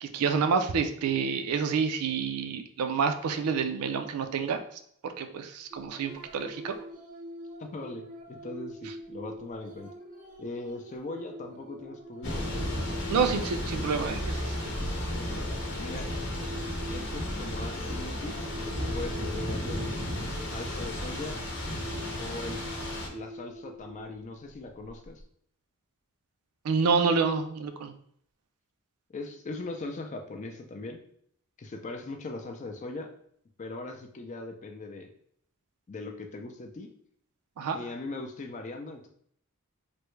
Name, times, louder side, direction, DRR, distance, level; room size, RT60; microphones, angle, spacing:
voice 1, 0.0-4.6 5.0-6.8 13.1-14.7 26.6-27.9 37.6-37.8, right 5 dB, 85° right, 8 dB, 0.4 m, -28 dB
sound 1, 5.7-25.2, equal, 35° right, 0.5 m, -45 dB
voice 2, 7.6-9.9 10.4-12.5 15.8-16.1 16.9-19.8 20.5-21.4 22.2-22.6 23.1-25.2 29.1-31.0 31.6-33.1 33.6-35.1 35.9-36.9 37.7-39.1, left 2 dB, 35° left, 4 dB, 0.4 m, -40 dB
Thunder / Rain, 12.2-23.1, left 1 dB, 55° left, 0.7 m, -33 dB
3.3 x 2.1 x 3.0 m, 0.66 s
head